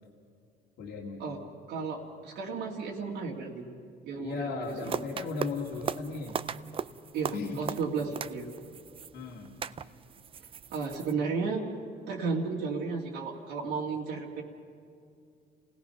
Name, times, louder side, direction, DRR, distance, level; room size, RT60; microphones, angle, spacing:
voice 1, 0.8-1.2 4.2-6.4 7.3-7.6 9.1-9.5, left 4 dB, 85° left, -4 dB, 2.2 m, -36 dB
voice 2, 1.7-3.7 4.0-5.0 7.1-8.5 10.7-11.6 12.1-14.4, right 4 dB, 85° right, -2 dB, 2.4 m, -33 dB
sound 1, 4.6-11.1, right 7 dB, 35° right, 0.5 m, -39 dB
28.5 x 17.5 x 5.8 m, 2.4 s
cardioid pair, 110°, 17 cm